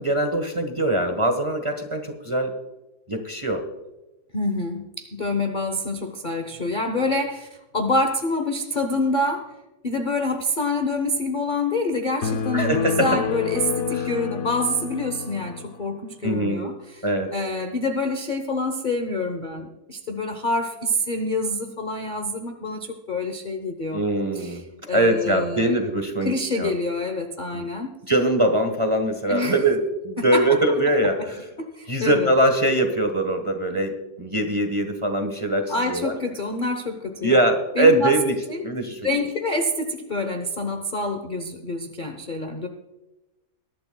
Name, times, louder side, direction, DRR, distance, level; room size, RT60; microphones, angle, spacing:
voice 1, 0.0-2.5 3.1-3.6 12.5-13.1 13.9-14.1 16.2-16.7 17.0-17.3 23.9-24.6 24.9-26.7 27.5-27.7 28.1-31.5 31.9-36.1 37.2-39.1, right 1 dB, 20° right, 5 dB, 1.1 m, -22 dB
voice 2, 4.3-7.5 7.7-9.6 9.8-17.0 17.3-24.0 24.3-24.6 24.9-25.7 26.2-27.9 29.3-29.6 30.2-30.6 31.6-32.3 35.7-37.4 37.7-38.1 38.5-38.6 39.0-42.7, left 2 dB, 35° left, 5 dB, 0.8 m, -26 dB
sound 1, 12.2-15.8, left 6 dB, 55° left, 1.1 m, -28 dB
21.5 x 12.0 x 2.3 m, 1.0 s
omnidirectional pair, 2.0 m